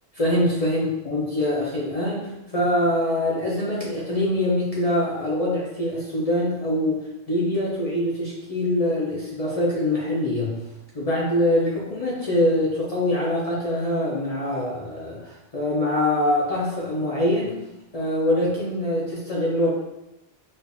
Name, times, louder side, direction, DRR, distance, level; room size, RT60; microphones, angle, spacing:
voice 1, 0.1-10.6 10.9-17.5 17.9-19.7, left 1 dB, 40° left, -6 dB, 0.6 m, -24 dB
4.3 x 2.5 x 2.5 m, 0.94 s
omnidirectional pair, 1.1 m